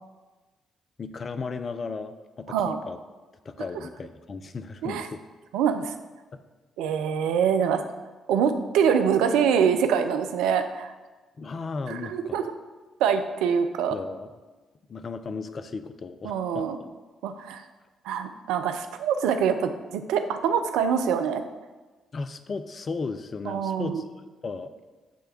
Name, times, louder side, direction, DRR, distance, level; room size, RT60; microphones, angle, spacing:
voice 1, 1.0-3.0 3.4-5.2 6.3-6.4 11.4-12.5 13.9-14.3 14.9-16.9 22.1-24.0 24.4-24.7, left 4 dB, 45° left, 10 dB, 0.6 m, -35 dB
voice 2, 2.5-2.8 4.8-5.1 5.5-5.9 6.8-7.8 8.3-10.9 11.9-12.4 13.0-14.0 16.2-16.8 17.2-17.6 18.0-21.4 23.4-24.0, right 7 dB, 75° right, 8 dB, 0.5 m, -24 dB
9.2 x 3.4 x 6.7 m, 1.2 s
hypercardioid pair, 45°, 0 cm